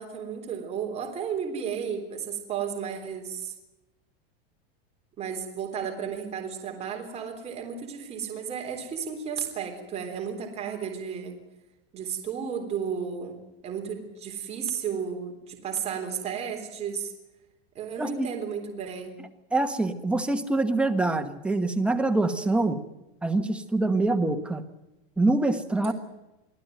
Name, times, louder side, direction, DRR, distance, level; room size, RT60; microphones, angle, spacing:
voice 1, 0.0-3.5 5.2-11.4 11.9-13.3 13.6-17.1 17.8-19.2 22.4-22.7 25.8-25.9, right 7 dB, 20° right, 2 dB, 3.6 m, -33 dB
voice 2, 18.0-18.3 19.5-22.8 23.2-24.6 25.2-25.9, right 2 dB, 5° right, 7 dB, 1.2 m, -25 dB
25.0 x 15.5 x 9.2 m, 0.98 s
supercardioid pair, 170°, 31 cm